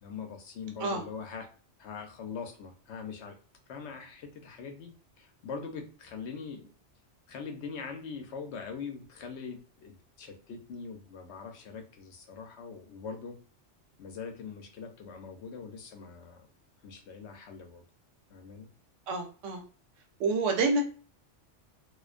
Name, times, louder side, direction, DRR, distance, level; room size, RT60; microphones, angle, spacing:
voice 1, 0.0-1.4 1.8-3.4 3.7-6.7 7.3-13.4 14.0-16.5 16.8-17.8 18.3-18.7, left 5 dB, 70° left, 4 dB, 0.9 m, -42 dB
voice 2, 19.1-19.6 20.2-20.8, right 3 dB, 90° right, 4 dB, 0.9 m, -28 dB
2.4 x 2.2 x 2.3 m, 0.39 s
omnidirectional pair, 1.2 m